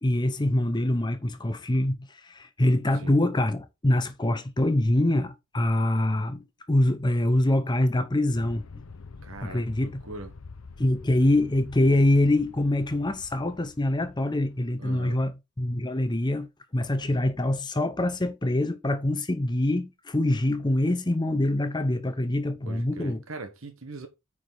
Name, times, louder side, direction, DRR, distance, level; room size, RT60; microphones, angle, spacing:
voice 1, 0.0-8.6 9.4-10.0 10.8-16.5 16.7-23.2, left 1 dB, 20° left, 0.7 m, -25 dB
Aircraft, 8.3-14.7, left 4 dB, 70° left, 0.6 m, -46 dB
voice 2, 9.2-10.3 14.8-15.2 22.6-24.1, right 3 dB, 60° right, 1.3 m, -41 dB
9.3 x 4.9 x 3.9 m
head